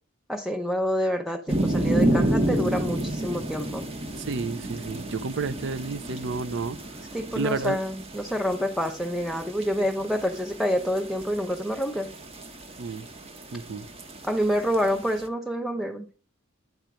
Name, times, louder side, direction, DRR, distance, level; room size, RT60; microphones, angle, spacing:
voice 1, 0.3-3.8 7.1-12.1 14.2-16.1, equal, ahead, 0.6 m, -27 dB
sound 1, 1.5-15.3, right 1 dB, 30° right, 0.9 m, -31 dB
voice 2, 4.2-6.8 7.4-7.8 12.8-13.1 13.5-13.9, right 4 dB, 65° right, 0.5 m, -31 dB
9.3 x 4.4 x 5.0 m
head